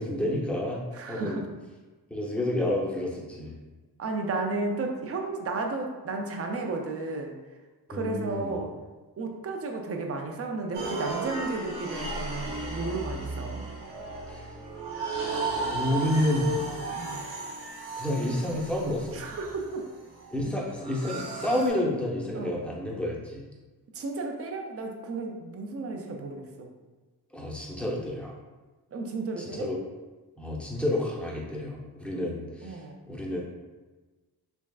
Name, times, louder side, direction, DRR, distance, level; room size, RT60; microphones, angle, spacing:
voice 1, 0.0-1.4 2.1-3.5 7.9-8.6 14.3-14.5 15.6-16.6 18.0-19.2 20.3-23.4 27.3-28.3 29.4-29.8 30.4-32.8 33.1-33.4, left 1 dB, 5° left, -3 dB, 0.7 m, -29 dB
voice 2, 0.9-1.4 4.0-7.4 7.9-8.7 9.2-13.6 16.9-17.2 19.1-19.8 22.3-22.6 23.9-26.7 28.9-29.7 32.6-33.0, right 3 dB, 35° right, 2 dB, 0.5 m, -33 dB
sound 1, 10.7-21.7, right 2 dB, 80° right, 1.0 m, -35 dB
3.5 x 3.1 x 2.3 m, 1.2 s
cardioid pair, 90°, 39 cm